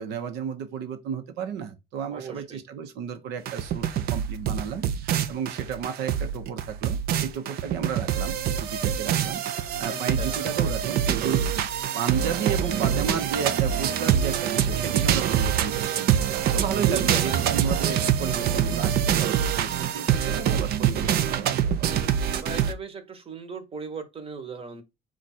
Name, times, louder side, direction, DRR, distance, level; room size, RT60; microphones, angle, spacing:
voice 1, 0.0-9.4 9.8-11.7 11.9-16.2 16.5-21.9, right 7 dB, 90° right, 0.9 m, -33 dB
voice 2, 2.1-2.6 9.9-10.5 16.9-17.6 22.4-24.8, right 5 dB, 35° right, 1.1 m, -37 dB
sound 1, 3.5-22.7, right 9 dB, 65° right, 0.6 m, -25 dB
4.8 x 2.5 x 4.1 m
cardioid pair, 110°, 17 cm